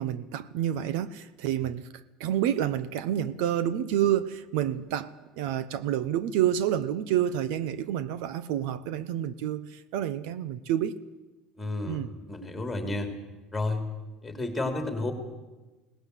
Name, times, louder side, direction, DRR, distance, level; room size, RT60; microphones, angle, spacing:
voice 1, 0.0-1.9 2.2-11.0 11.9-12.1, right 11 dB, 70° right, 1.0 m, -29 dB
voice 2, 11.6-13.1 13.5-13.8 14.2-15.1, left 2 dB, 5° left, 3.0 m, -31 dB
22.5 x 19.0 x 8.3 m
cardioid pair, 175°, 0 cm